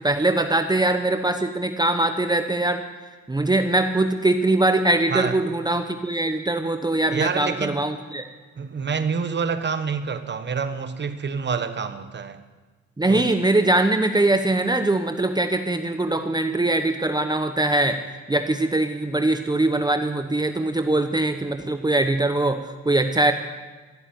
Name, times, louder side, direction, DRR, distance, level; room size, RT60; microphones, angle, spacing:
voice 1, 0.0-2.8 3.3-8.2 13.0-18.0 18.3-22.6 22.8-23.3, right 2 dB, 15° right, 7 dB, 1.0 m, -22 dB
voice 2, 7.1-7.8 8.6-12.4 13.1-13.3, right 5 dB, 35° right, 10 dB, 1.2 m, -27 dB
15.5 x 8.6 x 9.3 m, 1.3 s
cardioid pair, 90°, 30 cm